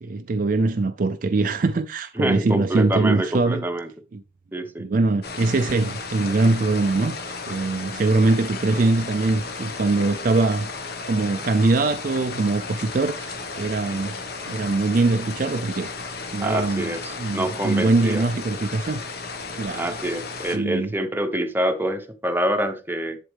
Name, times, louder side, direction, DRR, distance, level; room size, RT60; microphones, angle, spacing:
voice 1, 0.0-3.7 4.1-4.2 4.8-10.7 11.1-14.2 14.5-16.9 17.2-19.0 19.5-20.0 20.5-20.9, right 3 dB, 45° right, 0.4 m, -22 dB
voice 2, 2.2-3.9 4.5-4.9 16.4-18.3 19.7-23.2, right 1 dB, 10° right, 0.8 m, -26 dB
sound 1, 5.2-20.6, left 4 dB, 50° left, 1.2 m, -34 dB
7.9 x 7.4 x 3.4 m
head